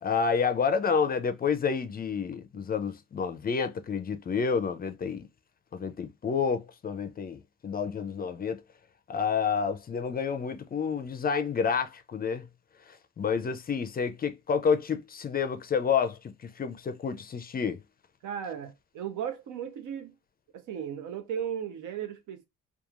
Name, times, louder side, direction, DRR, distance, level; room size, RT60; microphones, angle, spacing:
voice 1, 0.0-5.3 5.7-8.6 9.1-12.5 13.2-16.2 16.6-17.8, left 6 dB, 30° left, 0.4 m, -29 dB
voice 2, 18.2-20.1 20.5-22.4, right 8 dB, 85° right, 0.7 m, -36 dB
2.9 x 2.3 x 2.4 m
cardioid pair, 90°, 30 cm